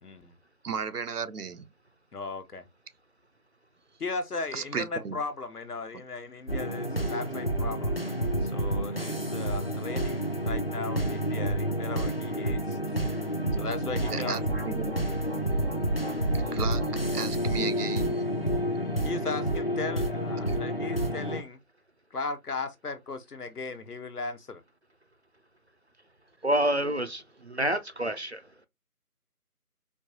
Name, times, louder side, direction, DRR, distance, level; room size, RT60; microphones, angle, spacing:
voice 1, 0.0-0.4 2.1-2.6 4.0-8.0 8.4-13.0 13.6-14.5 19.0-21.6 22.1-24.6, left 4 dB, 75° left, 1.1 m, -37 dB
voice 2, 0.6-1.6 4.5-5.2 14.1-14.9 16.3-18.2 20.5-20.6, right 6 dB, 80° right, 0.7 m, -35 dB
sound 1, 6.5-21.4, right 1 dB, 40° left, 0.5 m, -29 dB
voice 3, 26.4-28.4, right 1 dB, 50° right, 0.5 m, -28 dB
4.6 x 2.6 x 2.8 m
figure-of-eight pair, 165°, 46 cm